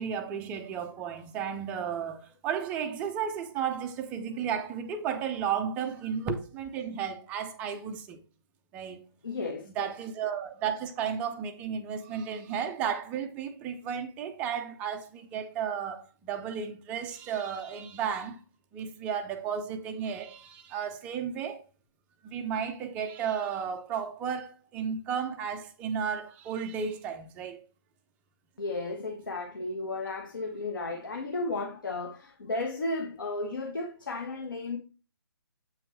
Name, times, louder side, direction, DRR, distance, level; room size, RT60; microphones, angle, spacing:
voice 1, 0.0-8.2 8.7-9.0 9.7-18.4 18.7-21.6 22.3-27.6, right 7 dB, 10° right, 0.5 m, -33 dB
voice 2, 9.2-9.9 28.6-34.8, left 2 dB, 55° left, 1.5 m, -34 dB
8.0 x 5.8 x 3.3 m
figure-of-eight pair, 140°, 13 cm